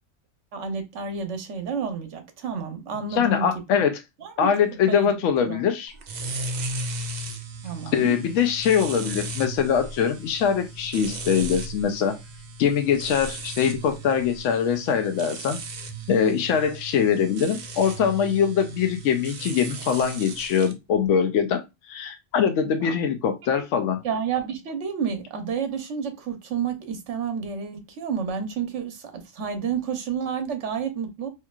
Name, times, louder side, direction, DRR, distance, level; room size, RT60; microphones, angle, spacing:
voice 1, 0.5-3.8 4.2-4.5 4.9-5.1 5.4-5.6 7.6-8.1 22.8-22.9 23.5-23.6 24.0-31.3, right 6 dB, 75° right, 1.1 m, -30 dB
voice 2, 3.2-4.0 4.4-5.9 7.9-12.2 12.6-15.6 16.1-21.6 21.9-24.0, left 7 dB, 80° left, 0.9 m, -23 dB
sound 1, 6.0-20.7, right 2 dB, 55° right, 0.5 m, -36 dB
4.3 x 2.9 x 2.3 m
omnidirectional pair, 1.3 m